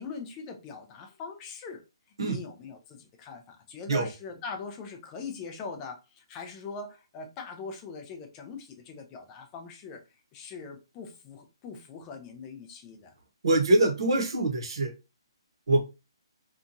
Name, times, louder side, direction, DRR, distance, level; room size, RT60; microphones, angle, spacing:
voice 1, 0.0-1.8 2.2-10.0 10.3-13.1, left 4 dB, 15° left, 0.3 m, -41 dB
voice 2, 13.4-14.9 15.7-15.8, right 2 dB, 60° right, 0.8 m, -24 dB
2.8 x 2.3 x 2.5 m
hypercardioid pair, 175°, 3 cm